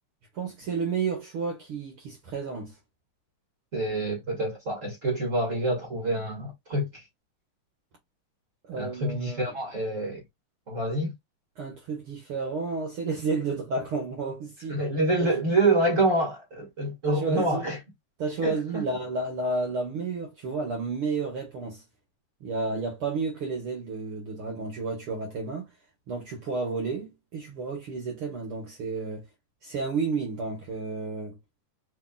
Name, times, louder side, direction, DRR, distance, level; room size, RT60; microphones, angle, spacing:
voice 1, 0.3-2.8 8.7-9.5 11.6-14.8 15.2-15.3 17.1-17.7 18.2-21.8 22.4-25.7 26.1-29.3 29.6-31.4, right 4 dB, 60° right, 1.6 m, -31 dB
voice 2, 3.7-7.0 8.7-10.2 10.7-11.1 14.7-17.8 18.4-18.8, right 2 dB, 35° right, 1.4 m, -27 dB
4.6 x 3.7 x 2.3 m
omnidirectional pair, 3.8 m